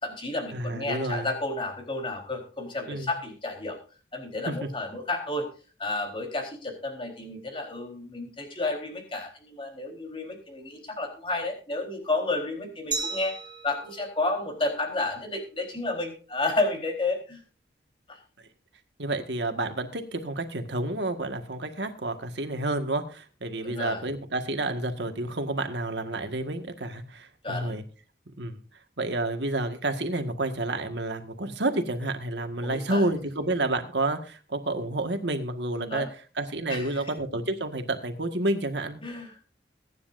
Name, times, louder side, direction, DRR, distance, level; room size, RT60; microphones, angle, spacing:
voice 1, 0.0-3.8 4.1-5.5 5.8-13.4 13.6-17.4 18.1-18.2 23.6-24.0 27.4-27.8 32.6-33.1 35.7-36.1 36.7-37.2 39.0-39.5, left 2 dB, 30° left, 3 dB, 4.0 m, -31 dB
voice 2, 0.5-1.3 2.9-3.1 4.5-4.7 19.0-27.8 28.4-28.6 29.0-36.1 36.3-39.0, right 2 dB, 70° right, 7 dB, 1.8 m, -30 dB
Glass, 12.9-15.6, right 4 dB, 25° right, 4.7 m, -37 dB
23.0 x 9.8 x 2.7 m, 0.37 s
head